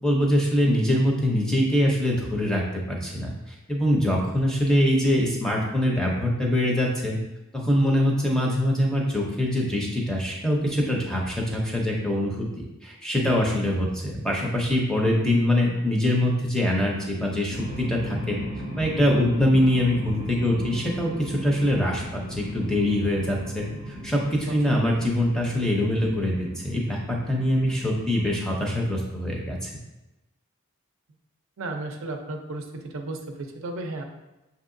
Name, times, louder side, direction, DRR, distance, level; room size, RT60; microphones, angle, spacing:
voice 1, 0.0-2.6 2.9-7.2 7.5-18.4 18.8-29.7, left 1 dB, 5° left, -2 dB, 0.6 m, -24 dB
sound 1, 17.5-28.4, equal, 40° right, 0.8 m, -37 dB
voice 2, 24.5-24.8 31.6-34.0, right 2 dB, 65° right, 3 dB, 0.5 m, -34 dB
6.4 x 2.8 x 2.6 m, 0.98 s
head